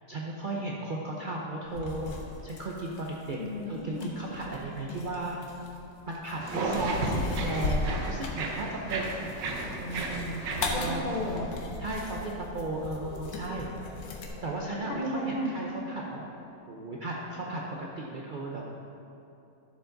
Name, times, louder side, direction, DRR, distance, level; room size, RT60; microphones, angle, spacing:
voice 1, 0.1-2.2 2.4-3.4 3.7-5.4 6.1-9.3 10.8-11.0 11.8-13.7 14.4-16.2 16.7-18.6, right 2 dB, 60° right, -2 dB, 0.5 m, -35 dB
sound 1, 1.6-14.3, left 3 dB, 85° left, 1.7 m, -38 dB
voice 2, 3.4-4.1 6.9-7.3 9.6-10.4 10.7-11.5 14.9-15.5, equal, 40° left, 0 dB, 0.7 m, -34 dB
sound 2, 6.4-11.5, right 3 dB, 85° right, 1.7 m, -34 dB
sound 3, 8.3-17.9, left 2 dB, 65° left, 1.1 m, -51 dB
13.0 x 7.0 x 3.9 m, 2.8 s
omnidirectional pair, 1.9 m